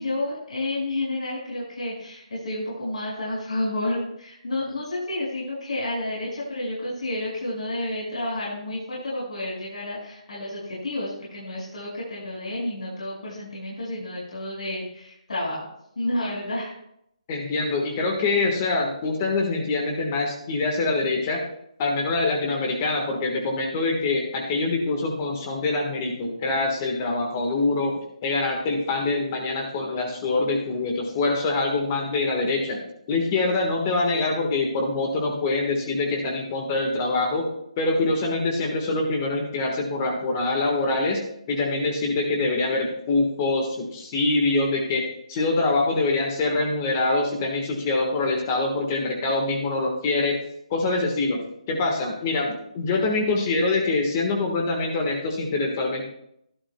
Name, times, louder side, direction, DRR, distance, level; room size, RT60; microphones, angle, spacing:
voice 1, 0.0-15.7 15.9-16.7, left 1 dB, 80° left, -6 dB, 5.3 m, -30 dB
voice 2, 17.3-21.4 21.8-37.5 37.8-41.2 41.5-50.3 50.7-51.4 51.7-56.1, left 3 dB, 25° left, 1 dB, 1.4 m, -24 dB
16.0 x 11.5 x 2.2 m, 0.75 s
hypercardioid pair, 170°, 4 cm